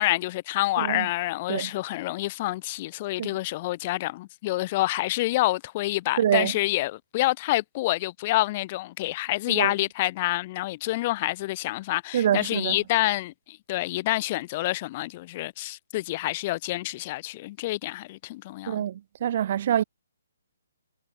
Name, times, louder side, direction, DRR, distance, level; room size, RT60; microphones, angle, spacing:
voice 1, 0.0-18.8, left 18 dB, 35° left, 1.7 m, -27 dB
voice 2, 0.8-1.1 1.5-1.7 3.2-3.3 6.2-6.5 9.5-9.7 12.1-12.8 18.7-19.8, right 10 dB, 50° right, 2.0 m, -25 dB
figure-of-eight pair, 140°, 0 cm